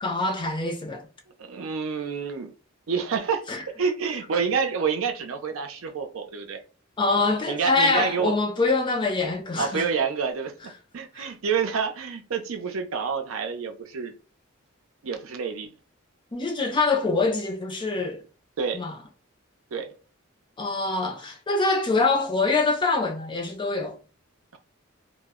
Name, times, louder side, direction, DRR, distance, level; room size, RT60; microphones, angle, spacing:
voice 1, 0.0-1.1 3.5-3.6 7.0-9.9 11.2-11.3 16.3-18.2 18.7-18.9 20.6-24.0, left 3 dB, 25° left, 0.5 m, -24 dB
voice 2, 1.4-2.5 2.9-3.4 3.8-6.6 7.4-8.3 9.6-14.1 15.0-15.7 18.6-18.8 19.7-19.9 24.5-24.6, right 6 dB, 80° right, 0.5 m, -28 dB
2.1 x 2.0 x 3.5 m
head